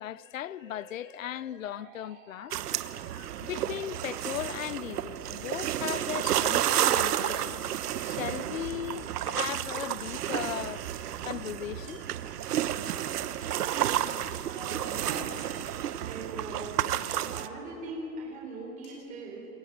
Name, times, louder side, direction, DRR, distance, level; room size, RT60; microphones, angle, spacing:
voice 1, 0.0-2.5 3.0-7.7 8.0-10.9 11.2-12.0, left 11 dB, 55° left, 0.5 m, -37 dB
sound 1, 0.6-16.1, right 5 dB, 35° right, 2.8 m, -55 dB
sound 2, 2.5-17.5, right 11 dB, 70° right, 1.1 m, -31 dB
sound 3, 11.8-12.3 13.8-13.9 15.5-15.9 17.1-17.2 18.8-19.0, right 1 dB, 25° left, 6.1 m, -55 dB
voice 2, 14.4-15.4 16.0-16.8 17.1-19.5, right 2 dB, 15° right, 3.6 m, -40 dB
28.0 x 22.0 x 6.4 m
hypercardioid pair, 180°, 48 cm